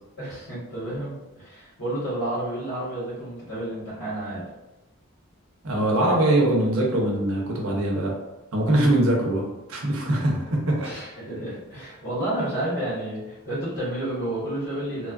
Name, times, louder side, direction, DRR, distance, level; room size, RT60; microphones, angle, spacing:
voice 1, 0.2-4.4 6.0-6.2 10.8-15.1, right 1 dB, 85° left, -12 dB, 1.4 m, -30 dB
voice 2, 5.6-8.1 8.5-10.9, right 1 dB, 70° right, -1 dB, 0.7 m, -22 dB
3.0 x 2.3 x 2.4 m, 1.0 s
head